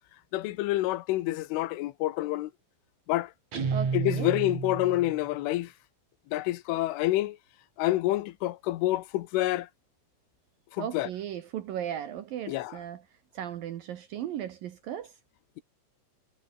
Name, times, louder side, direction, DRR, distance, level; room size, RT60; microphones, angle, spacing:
voice 1, 0.3-2.5 3.1-3.3 3.9-5.7 6.3-7.4 7.8-9.7 10.8-11.1 12.5-12.7, left 16 dB, 90° left, 3.7 m, -28 dB
Guitar, 3.5-5.2, right 5 dB, 35° right, 5.1 m, -31 dB
voice 2, 3.7-4.3 10.8-13.0 13.3-15.1, right 10 dB, 70° right, 2.3 m, -36 dB
omnidirectional pair, 5.5 m